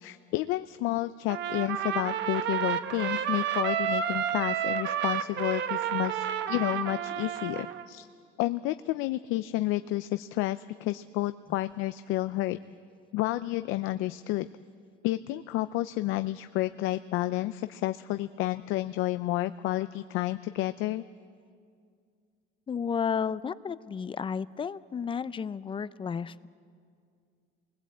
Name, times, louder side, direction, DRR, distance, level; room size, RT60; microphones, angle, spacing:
voice 1, 0.0-8.1 8.4-12.6 13.1-14.5 15.0-21.0, left 16 dB, 85° left, 12 dB, 0.6 m, -30 dB
Trumpet, 1.3-7.9, right 9 dB, 65° right, 1.2 m, -30 dB
voice 2, 22.7-26.5, left 6 dB, 25° left, 16 dB, 0.5 m, -32 dB
28.0 x 20.5 x 8.5 m, 2.3 s
cardioid pair, 140°, 20 cm